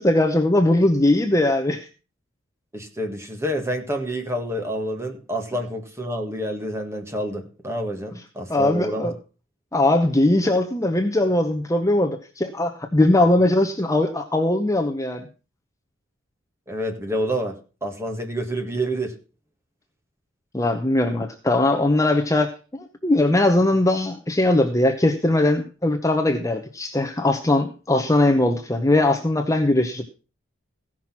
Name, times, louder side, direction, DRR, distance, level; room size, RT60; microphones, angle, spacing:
voice 1, 0.0-1.9 8.5-9.1 9.7-15.3 20.5-30.0, left 1 dB, 15° left, 4 dB, 0.8 m, -20 dB
voice 2, 2.7-9.1 16.7-17.6 17.8-19.1, right 1 dB, 15° right, 3 dB, 1.8 m, -28 dB
16.0 x 6.1 x 5.8 m, 0.35 s
head